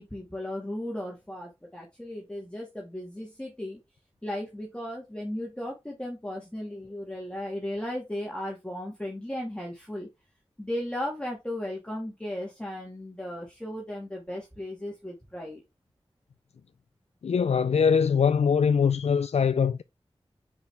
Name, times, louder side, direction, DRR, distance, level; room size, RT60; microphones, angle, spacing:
voice 1, 0.0-3.8 4.2-10.1 10.6-15.6, left 1 dB, 10° left, 2.0 m, -36 dB
voice 2, 17.2-19.8, left 6 dB, 75° left, 0.4 m, -22 dB
6.5 x 5.5 x 3.5 m
wide cardioid pair, 50°, 11 cm